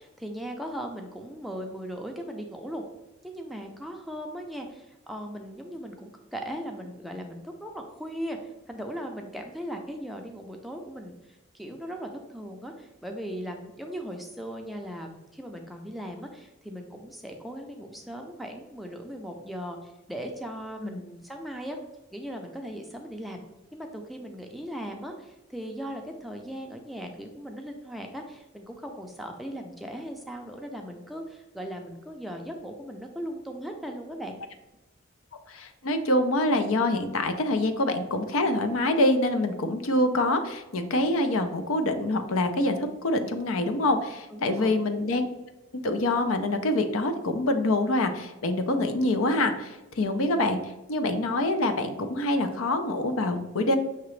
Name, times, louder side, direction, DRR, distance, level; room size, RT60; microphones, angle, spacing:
voice 1, 0.0-2.8 3.2-21.8 22.1-23.4 23.7-34.4 44.3-44.8, equal, ahead, 2 dB, 0.4 m, -38 dB
voice 2, 35.5-45.3 45.8-50.6 50.9-53.8, left 1 dB, 75° left, 8 dB, 0.5 m, -25 dB
5.8 x 2.9 x 3.1 m, 1.0 s
head